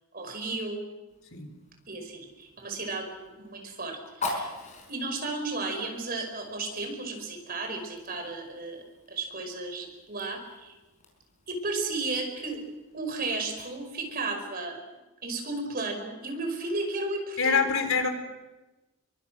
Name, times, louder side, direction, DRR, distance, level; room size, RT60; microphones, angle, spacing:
voice 1, 0.1-0.8 1.9-4.5 4.9-8.8 9.1-10.7 11.5-12.6 12.9-14.8 15.2-17.6, right 3 dB, 40° right, 4 dB, 5.3 m, -34 dB
Fire, 1.1-14.4, left 2 dB, 30° left, 5.3 m, -44 dB
voice 2, 17.4-18.1, left 5 dB, 65° left, 6 dB, 3.7 m, -25 dB
27.5 x 23.5 x 6.3 m, 1.1 s
head